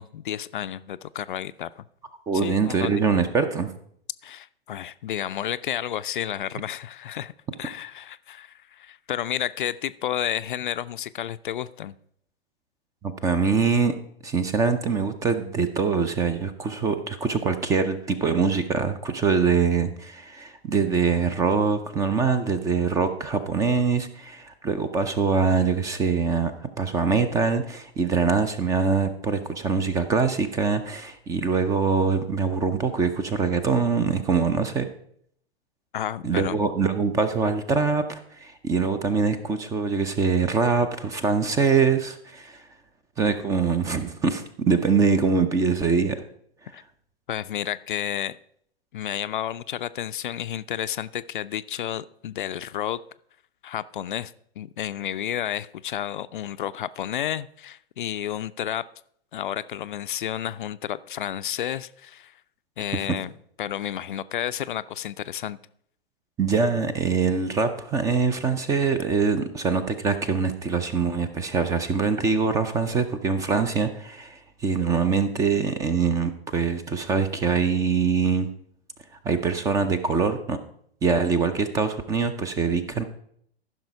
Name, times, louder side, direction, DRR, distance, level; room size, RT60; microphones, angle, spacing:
voice 1, 0.0-1.8 2.3-3.3 4.2-7.3 7.6-12.0 35.9-36.7 46.7-46.8 47.3-48.4 48.9-53.0 53.6-58.8 59.3-62.3 62.8-63.3 63.6-65.6, left 11 dB, 50° left, 14 dB, 0.5 m, -31 dB
voice 2, 2.3-3.7 13.0-14.0 14.2-26.5 26.8-34.9 36.2-42.6 43.2-46.2 66.4-78.5 79.2-80.6 81.0-83.0, right 5 dB, 10° right, 11 dB, 0.5 m, -23 dB
14.5 x 6.1 x 4.7 m, 0.66 s
figure-of-eight pair, 110°, 32 cm